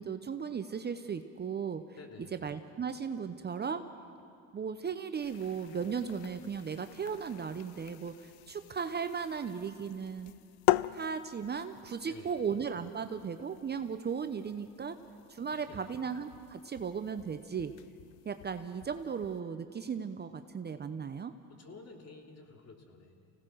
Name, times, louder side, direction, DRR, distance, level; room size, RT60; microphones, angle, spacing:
voice 1, 0.0-1.8 2.3-3.8 4.5-10.3 10.9-15.0 15.3-17.7 18.2-21.3, right 6 dB, 25° right, 9 dB, 0.8 m, -36 dB
voice 2, 1.9-2.4 12.0-12.4 15.4-15.9 21.5-23.3, left 4 dB, 40° left, 2 dB, 3.0 m, -52 dB
sound 1, 5.2-19.4, left 18 dB, 75° left, 0.5 m, -40 dB
25.5 x 17.5 x 6.3 m, 2.4 s
supercardioid pair, 85°, 38 cm